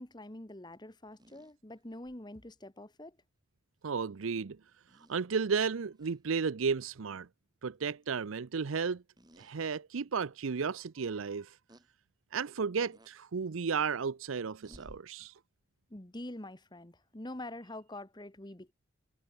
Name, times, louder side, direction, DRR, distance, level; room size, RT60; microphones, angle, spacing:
voice 1, 0.0-3.2 15.9-18.7, left 1 dB, 20° left, 1.4 m, -45 dB
sound 1, 1.1-2.2 3.9-4.0 4.9-5.2 6.0-6.2 6.6-6.8 9.2-9.5 10.1-10.2 11.7-11.9 12.9-13.2 14.6-15.0, equal, 20° right, 4.0 m, -58 dB
voice 2, 3.8-4.6 5.1-7.3 7.6-9.0 9.4-11.6 12.3-15.3, right 5 dB, 80° right, 0.6 m, -33 dB
head